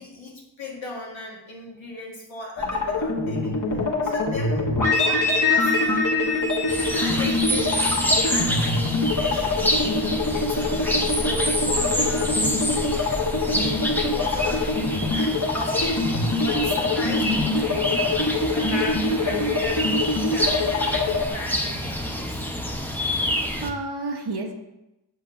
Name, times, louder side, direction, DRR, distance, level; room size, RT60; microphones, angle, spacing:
voice 1, 0.0-4.7 5.0-6.0 6.7-12.4 14.0-14.7 15.1-16.0 16.3-18.2 18.5-22.4, left 2 dB, 90° left, -4 dB, 1.6 m, -37 dB
sound 1, 2.6-21.3, left 3 dB, 45° left, 1.3 m, -24 dB
sound 2, 6.7-23.7, equal, 5° left, 0.8 m, -27 dB
voice 2, 19.3-19.6 23.0-24.5, right 2 dB, 60° right, 2 dB, 1.1 m, -32 dB
7.7 x 6.6 x 2.5 m, 0.95 s
wide cardioid pair, 45°, 45 cm